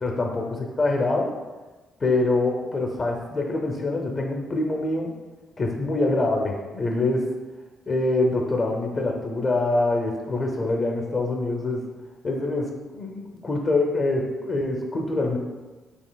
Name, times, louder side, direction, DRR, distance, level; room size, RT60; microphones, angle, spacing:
voice 1, 0.0-1.3 2.0-5.1 5.6-7.2 7.9-11.8 12.2-12.7 12.9-15.4, left 2 dB, 40° left, 1 dB, 0.5 m, -25 dB
5.1 x 2.8 x 2.3 m, 1.2 s
cardioid pair, 90°, 0 cm